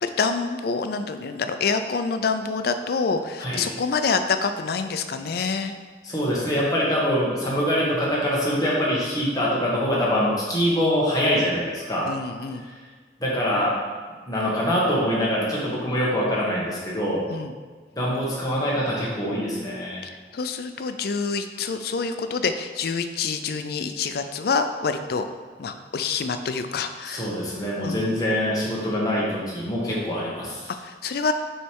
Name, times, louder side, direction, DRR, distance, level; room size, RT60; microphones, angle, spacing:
voice 1, 0.0-5.7 12.1-12.6 17.3-17.5 20.3-25.2 25.6-27.3 27.8-28.2 30.8-31.3, left 5 dB, 55° left, 8 dB, 0.4 m, -27 dB
voice 2, 6.0-12.1 13.2-13.7 14.3-17.2 17.9-20.0 27.0-30.7, equal, 20° left, -6 dB, 1.3 m, -24 dB
6.6 x 3.2 x 4.5 m, 1.5 s
head